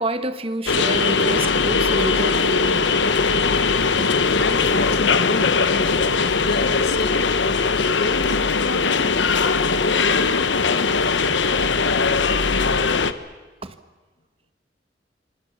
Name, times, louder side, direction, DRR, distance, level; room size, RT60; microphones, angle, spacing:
voice 1, 0.0-2.9 13.6-13.7, right 2 dB, 30° right, 1.2 m, -28 dB
sound 1, 0.7-13.1, left 4 dB, 85° left, 1.1 m, -20 dB
voice 2, 4.3-6.2 6.4-8.4, left 3 dB, 65° left, 1.7 m, -30 dB
27.0 x 24.5 x 7.1 m
head